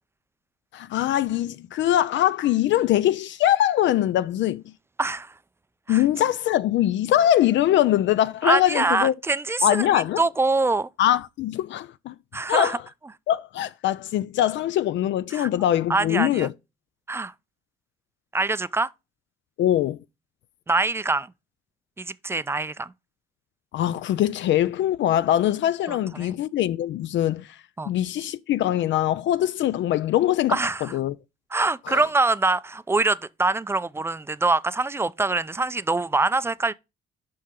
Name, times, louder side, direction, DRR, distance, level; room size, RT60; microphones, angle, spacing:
voice 1, 0.7-4.6 5.9-9.1 9.6-10.2 11.0-12.1 12.5-12.8 13.3-16.5 19.6-20.0 23.7-27.6 27.9-31.2 31.9-32.0, left 12 dB, 70° left, 0.4 m, -22 dB
voice 2, 5.0-5.3 5.9-6.0 8.4-10.9 12.3-12.8 15.3-15.5 15.9-16.5 17.1-17.3 18.3-18.9 20.7-21.3 22.0-22.9 25.9-26.3 27.8-27.9 30.5-30.8 31.5-36.7, right 3 dB, 10° right, 0.4 m, -24 dB
7.7 x 5.6 x 3.7 m
cardioid pair, 90°, 20 cm